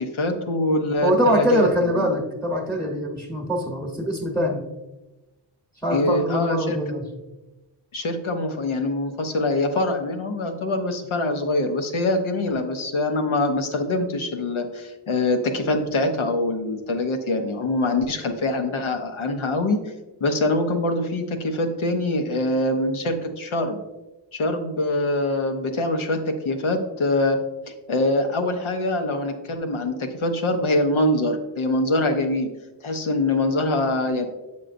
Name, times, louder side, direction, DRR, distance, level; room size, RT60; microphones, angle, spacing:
voice 1, 0.0-2.1 5.9-6.8 7.9-19.8 20.2-23.8 24.3-27.4 27.9-32.5 32.8-34.3, left 2 dB, 90° left, 5 dB, 0.8 m, -24 dB
voice 2, 1.0-4.7 5.8-7.1, equal, ahead, 0 dB, 1.0 m, -23 dB
7.7 x 5.4 x 2.5 m, 1.1 s
wide cardioid pair, 40°, 47 cm